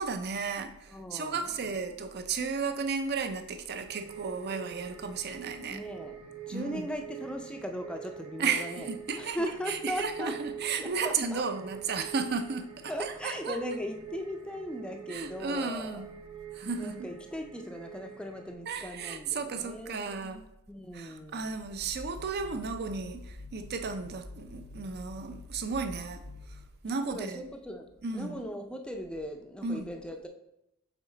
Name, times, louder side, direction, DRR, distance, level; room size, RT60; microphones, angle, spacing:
voice 1, 0.0-5.8 6.5-6.9 8.4-9.4 9.7-13.6 15.1-16.1 16.5-17.1 18.7-20.5 20.9-26.2 26.8-27.5 28.0-28.4 29.6-29.9, right 5 dB, 50° right, 8 dB, 0.5 m, -34 dB
voice 2, 0.9-1.7 5.7-6.2 6.5-8.9 9.2-10.4 10.8-11.4 12.9-16.0 16.8-20.3 20.7-21.6 27.1-30.3, equal, 5° left, 4 dB, 0.5 m, -38 dB
sound 1, 3.9-18.5, right 8 dB, 75° right, 1.3 m, -45 dB
sound 2, 21.5-27.0, left 2 dB, 80° left, 0.7 m, -47 dB
6.2 x 4.1 x 3.9 m, 0.84 s
head